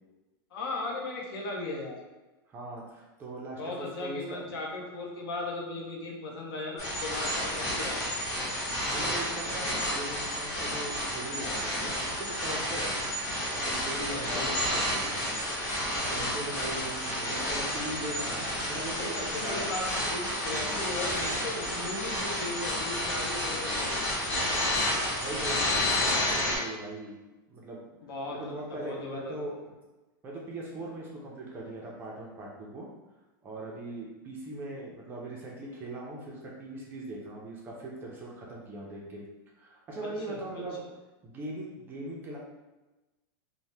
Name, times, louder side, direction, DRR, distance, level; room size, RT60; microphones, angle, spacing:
voice 1, 0.5-2.0 3.6-8.0 14.1-14.4 18.9-23.9 28.0-29.3 40.3-40.6, left 2 dB, 70° left, -1 dB, 0.7 m, -37 dB
voice 2, 2.5-4.5 8.9-13.0 13.5-15.2 16.1-19.7 25.2-27.1 27.5-27.8 28.3-29.7 30.2-32.9 33.4-39.2 39.6-40.8 41.2-42.4, right 1 dB, 15° right, -3 dB, 0.4 m, -40 dB
sound 1, 6.8-26.6, left 1 dB, 45° left, 1.5 m, -31 dB
2.7 x 2.0 x 3.2 m, 1.1 s
supercardioid pair, 170°, 12 cm